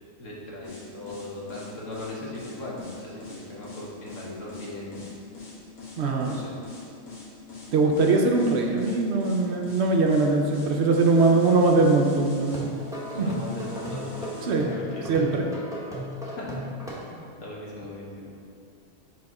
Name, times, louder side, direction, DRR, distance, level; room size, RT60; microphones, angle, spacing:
voice 1, 0.2-5.0 6.2-6.6 13.1-15.4 16.2-16.7 17.1-18.3, left 1 dB, 65° left, -5 dB, 1.5 m, -38 dB
sound 1, 0.6-14.5, left 4 dB, 85° left, 1.8 m, -43 dB
voice 2, 6.0-6.4 7.7-12.7 13.2-13.3 14.5-14.7 15.1-15.5, right 3 dB, 65° right, 2 dB, 0.7 m, -21 dB
sound 2, 12.3-16.9, equal, 5° right, 0.7 m, -36 dB
4.9 x 4.1 x 4.7 m, 2.4 s
omnidirectional pair, 1.5 m